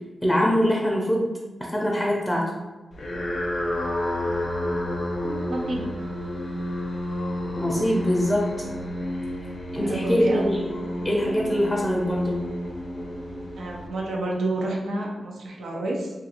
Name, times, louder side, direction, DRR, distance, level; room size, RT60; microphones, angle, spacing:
voice 1, 0.2-1.3 1.6-2.5 7.6-8.5 9.7-10.6 11.0-12.4, equal, 10° left, -3 dB, 0.5 m, -23 dB
sound 1, 2.9-14.4, left 1 dB, 60° left, 0.6 m, -31 dB
voice 2, 5.2-5.9 9.8-10.4 13.6-16.1, right 2 dB, 90° right, -1 dB, 0.5 m, -29 dB
2.4 x 2.4 x 2.8 m, 1.2 s
cardioid pair, 65°, 0 cm